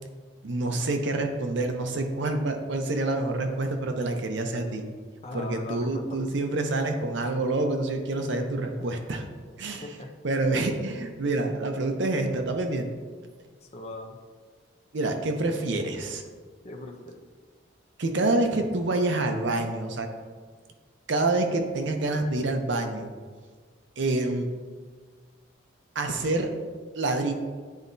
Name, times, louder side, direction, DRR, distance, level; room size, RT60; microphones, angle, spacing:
voice 1, 0.4-4.8 5.3-9.2 9.6-9.9 10.2-12.9 14.9-16.2 18.0-20.1 21.1-23.1 24.0-24.5 25.9-26.5 27.0-27.3, right 2 dB, 65° right, 5 dB, 0.6 m, -27 dB
voice 2, 5.2-6.3 9.8-10.1 13.6-14.2 16.6-17.2, left 2 dB, 30° left, 2 dB, 0.5 m, -39 dB
9.4 x 4.1 x 2.6 m, 1.5 s
head